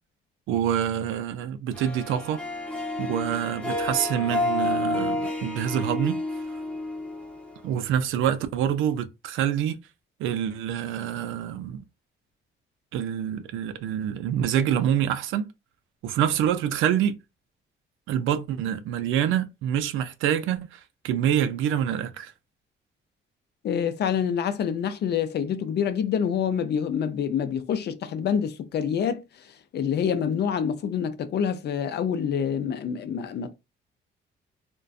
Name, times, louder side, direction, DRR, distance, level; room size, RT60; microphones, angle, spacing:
voice 1, 0.5-2.4 3.0-6.2 7.6-9.8 10.2-11.8 12.9-15.5 16.0-17.2 18.1-22.3, right 10 dB, 85° right, 0.4 m, -26 dB
Harp, 1.7-8.0, left 2 dB, 5° left, 0.6 m, -30 dB
voice 2, 23.6-33.5, left 8 dB, 55° left, 0.4 m, -27 dB
2.4 x 2.2 x 2.3 m
cardioid pair, 90°, 20 cm